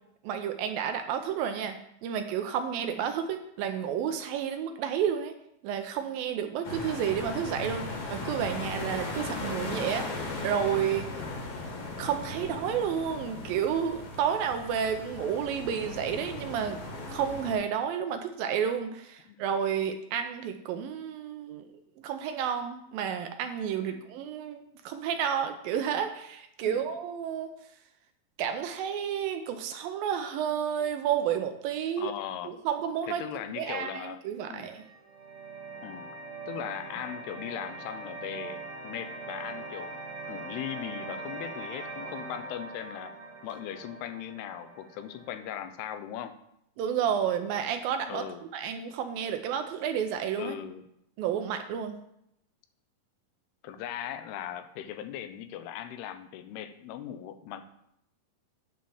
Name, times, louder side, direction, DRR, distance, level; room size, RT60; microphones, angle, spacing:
voice 1, 0.2-1.8 2.0-5.3 5.6-11.1 12.0-16.8 17.1-21.7 22.0-27.5 28.4-32.1 32.4-33.2 33.6-34.8 46.8-48.2 48.5-50.6 51.2-51.9, right 8 dB, 80° right, 7 dB, 2.3 m, -31 dB
sound 1, 6.6-17.5, left 2 dB, 50° left, 2.2 m, -37 dB
voice 2, 32.0-32.5 33.1-34.2 34.5-34.7 35.8-36.1 36.5-38.6 38.8-40.0 40.3-43.1 43.4-46.4 48.1-48.4 50.4-50.8 53.6-57.6, left 10 dB, 90° left, 9 dB, 2.7 m, -39 dB
sound 2, 34.7-45.7, right 3 dB, 60° right, 1.5 m, -42 dB
9.4 x 4.2 x 7.1 m, 0.77 s
omnidirectional pair, 4.5 m